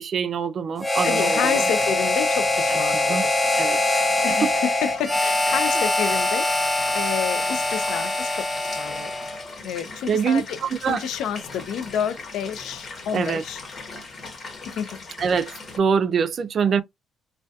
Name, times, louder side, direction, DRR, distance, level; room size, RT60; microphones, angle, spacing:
voice 1, 0.0-1.7 3.1-3.3 3.6-3.8 4.4-4.5 10.1-11.0 13.1-13.4 15.2-15.5 15.8-16.8, right 6 dB, 55° right, 0.3 m, -24 dB
Harmonica, 0.8-9.4, left 2 dB, 10° left, 0.6 m, -23 dB
voice 2, 1.0-3.3 4.2-6.5 6.9-9.1 9.6-10.4 10.9-13.6 14.8-14.9, left 8 dB, 85° left, 0.3 m, -29 dB
sound 1, 1.0-15.8, left 3 dB, 45° left, 0.9 m, -40 dB
2.2 x 2.2 x 2.6 m
cardioid pair, 90°, 0 cm